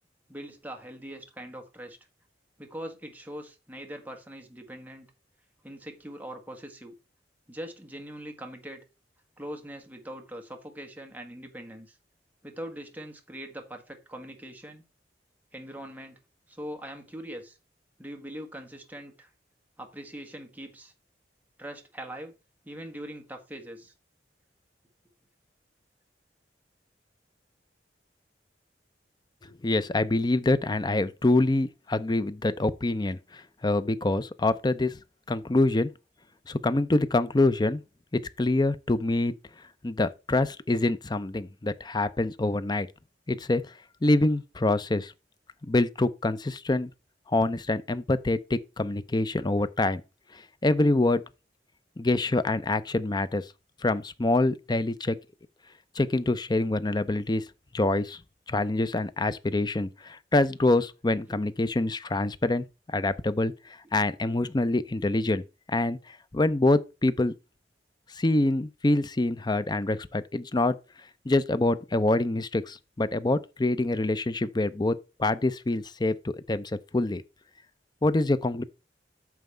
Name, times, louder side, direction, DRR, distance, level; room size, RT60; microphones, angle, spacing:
voice 1, 0.3-2.0 2.6-5.1 5.6-6.9 7.5-8.8 9.4-12.0 12.4-14.8 15.5-16.2 16.5-17.6 18.0-19.3 19.8-20.9 21.6-22.3 22.6-23.9 61.2-61.4 63.8-64.0, right 1 dB, 10° right, 1.5 m, -42 dB
voice 2, 29.6-35.0 35.3-35.9 36.5-37.8 38.4-39.3 39.8-42.9 43.3-43.6 44.0-45.1 45.7-46.9 47.3-50.0 50.3-51.2 52.0-53.4 53.8-55.2 56.0-57.4 57.7-58.2 58.5-63.5 63.9-65.4 65.7-66.0 66.3-67.3 68.2-70.8 71.3-77.2 78.0-78.6, left 2 dB, 25° left, 0.5 m, -25 dB
9.2 x 6.3 x 3.4 m
head